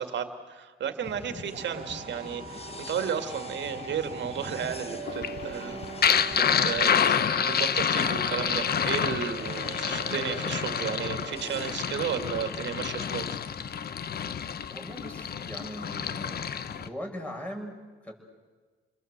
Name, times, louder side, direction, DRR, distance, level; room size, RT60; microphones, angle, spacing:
voice 1, 0.0-5.8 6.4-13.3, right 8 dB, 65° right, 8 dB, 2.2 m, -33 dB
sound 1, 1.0-16.9, left 4 dB, 30° left, 1.2 m, -44 dB
sound 2, 1.2-11.6, right 7 dB, 45° right, 1.0 m, -42 dB
sound 3, 5.1-16.9, left 8 dB, 50° left, 1.0 m, -28 dB
voice 2, 14.7-16.4 16.7-18.1, equal, 5° left, 0 dB, 6.9 m, -40 dB
29.5 x 21.5 x 8.0 m, 1.4 s
cardioid pair, 90°, 20 cm